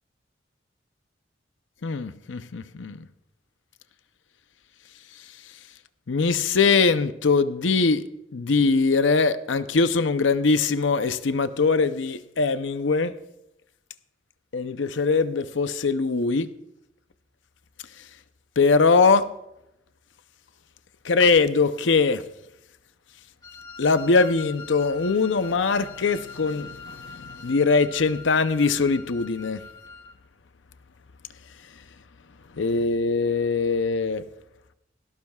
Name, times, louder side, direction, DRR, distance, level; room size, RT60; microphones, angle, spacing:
voice 1, 1.8-3.0 6.1-8.0 8.3-13.1 14.5-16.5 18.6-19.3 21.0-22.2 23.8-29.6 32.6-34.2, left 4 dB, 85° left, 0.7 m, -22 dB
Wind instrument woodwind instrument, 23.4-30.2, left 4 dB, 20° left, 1.7 m, -43 dB
20.0 x 16.5 x 2.4 m
head